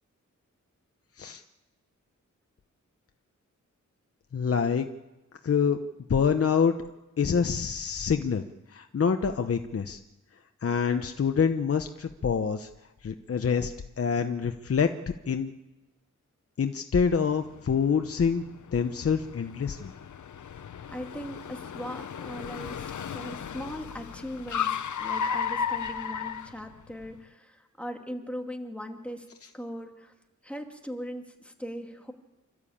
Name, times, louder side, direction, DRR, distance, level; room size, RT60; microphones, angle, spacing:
voice 1, 4.3-4.9 5.4-5.8 6.1-6.8 7.2-10.0 10.6-12.7 13.0-14.9 15.3-15.5 16.6-18.4 18.7-19.9, left 6 dB, 50° left, 7 dB, 0.9 m, -26 dB
Car, 17.3-27.1, left 7 dB, 75° left, 0.9 m, -35 dB
voice 2, 20.9-29.3 29.5-30.1 30.4-32.1, equal, 5° left, 3 dB, 2.4 m, -39 dB
29.0 x 13.0 x 8.7 m, 1.1 s
wide cardioid pair, 135°, 30 cm